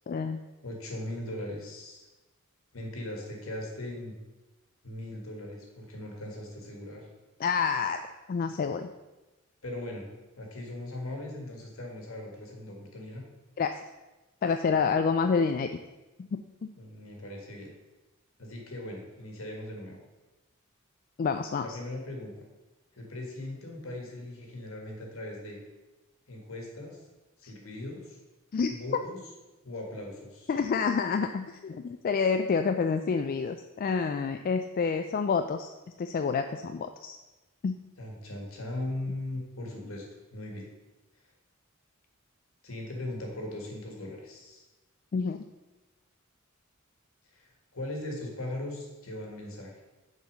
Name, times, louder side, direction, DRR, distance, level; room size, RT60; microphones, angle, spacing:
voice 1, 0.1-0.4 7.4-8.9 13.6-13.8 14.4-15.8 16.3-16.4 21.2-21.8 27.4-27.5 28.5-28.7 30.5-35.7 36.0-37.2 37.6-37.7 45.1-45.4, left 5 dB, 40° left, 7 dB, 0.3 m, -28 dB
voice 2, 0.6-2.1 2.7-4.2 4.8-7.1 9.6-10.0 10.4-13.2 16.8-17.7 18.4-20.0 21.6-22.3 22.9-25.6 26.3-27.0 27.4-28.2 28.7-29.2 29.6-30.5 38.0-40.1 40.3-40.7 42.6-44.6 47.3-49.8, left 1 dB, 70° left, 1 dB, 1.8 m, -39 dB
6.9 x 4.2 x 6.3 m, 1.1 s
head